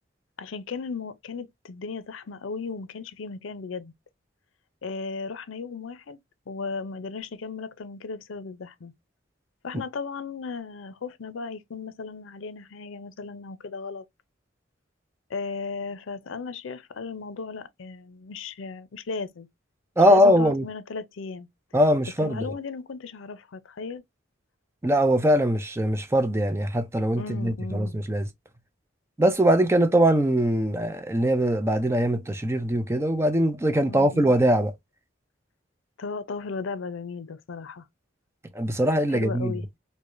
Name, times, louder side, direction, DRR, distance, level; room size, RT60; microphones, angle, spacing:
voice 1, 0.4-3.9 4.8-6.2 6.5-8.9 9.6-14.0 15.3-19.5 20.1-21.5 22.2-24.0 27.2-28.0 33.8-34.4 36.0-37.9 39.1-39.7, left 4 dB, 85° left, 0.5 m, -36 dB
voice 2, 20.0-20.7 21.7-22.5 24.8-28.3 29.2-34.7 38.5-39.5, equal, 15° right, 0.4 m, -22 dB
4.7 x 2.1 x 2.5 m
head